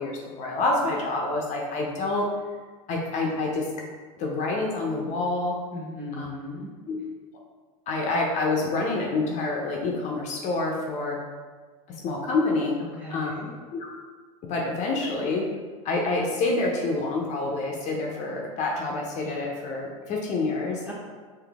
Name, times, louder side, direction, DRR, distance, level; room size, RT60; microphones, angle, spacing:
voice 1, 0.0-2.3 2.9-3.7 4.2-5.6 6.1-6.3 6.9-7.0 7.9-11.2 12.0-12.7 13.1-13.3 13.7-13.9 14.5-15.4 15.8-20.9, left 2 dB, 40° left, -1 dB, 0.6 m, -27 dB
voice 2, 5.7-6.7 12.8-13.5 20.8-20.9, left 1 dB, 10° right, -5 dB, 1.1 m, -37 dB
3.9 x 2.7 x 3.4 m, 1.5 s
supercardioid pair, 115°, 18 cm